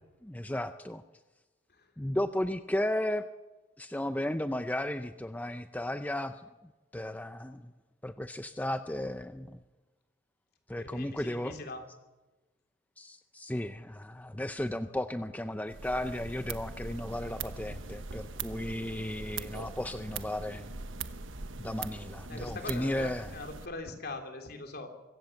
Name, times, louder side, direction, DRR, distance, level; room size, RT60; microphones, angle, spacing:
voice 1, 0.2-1.0 2.0-3.3 3.8-6.4 6.9-7.7 8.0-9.6 10.7-11.6 13.0-20.7 21.6-23.3, left 1 dB, 10° left, 9 dB, 0.6 m, -34 dB
voice 2, 10.8-11.8 22.3-24.9, left 2 dB, 55° left, 5 dB, 3.4 m, -42 dB
sound 1, 15.7-23.7, right 4 dB, 80° right, 1.2 m, -41 dB
25.0 x 16.0 x 7.3 m, 1.1 s
head